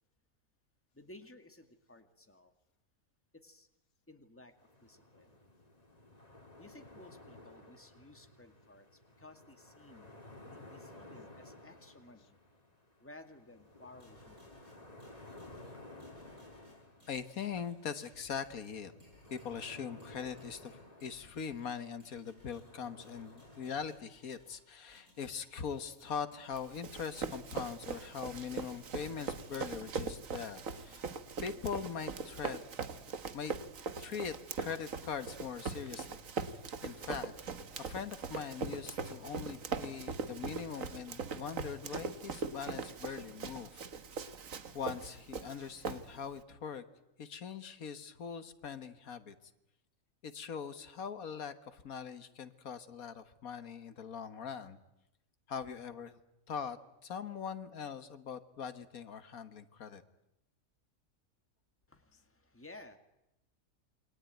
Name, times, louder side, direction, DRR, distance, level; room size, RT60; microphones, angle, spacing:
voice 1, 0.9-2.5 3.3-3.7 4.1-5.4 6.6-10.2 10.4-12.4 13.0-14.5 61.9-63.0, left 2 dB, 10° left, 7 dB, 2.0 m, -56 dB
sound 1, 4.6-23.8, left 2 dB, 25° left, 3.1 m, -55 dB
sound 2, 14.0-30.0, equal, 90° right, 8.6 m, -63 dB
voice 2, 17.1-18.9 19.3-31.0 31.4-32.6 33.3-33.5 34.0-36.2 36.8-37.3 37.8-43.8 44.7-46.9 47.2-49.4 50.2-54.8 55.5-56.2 56.5-60.0, left 6 dB, 85° left, 11 dB, 1.9 m, -42 dB
Run, 26.5-46.4, right 5 dB, 70° right, 1.7 m, -41 dB
28.0 x 23.0 x 9.3 m, 0.86 s
omnidirectional pair, 1.5 m